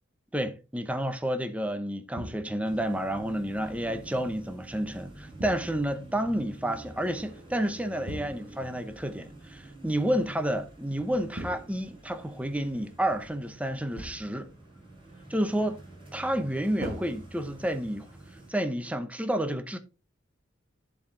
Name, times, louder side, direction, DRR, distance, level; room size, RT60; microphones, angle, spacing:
voice 1, 0.3-14.5 15.3-15.8 16.1-18.1 18.5-19.8, right 1 dB, 5° right, 0.8 m, -30 dB
sound 1, 2.2-2.8 5.4-6.1 8.1-8.7 11.4-12.3 14.0-14.5 16.8-17.9, right 1 dB, 55° right, 1.7 m, -41 dB
sound 2, 2.6-18.5, right 2 dB, 25° right, 5.0 m, -48 dB
11.0 x 4.7 x 3.9 m
head